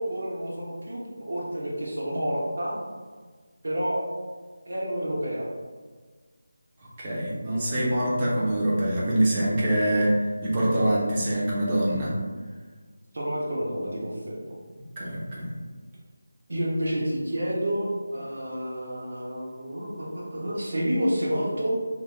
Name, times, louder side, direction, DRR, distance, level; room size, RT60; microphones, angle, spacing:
voice 1, 0.0-2.7 3.6-4.0 4.6-5.5 13.1-14.5 16.5-21.7, equal, 65° right, -5 dB, 0.7 m, -29 dB
voice 2, 7.0-10.1 10.4-12.1 15.0-15.5, right 1 dB, 20° right, -7 dB, 0.6 m, -24 dB
2.1 x 2.1 x 3.5 m, 1.5 s
figure-of-eight pair, 170°, 0 cm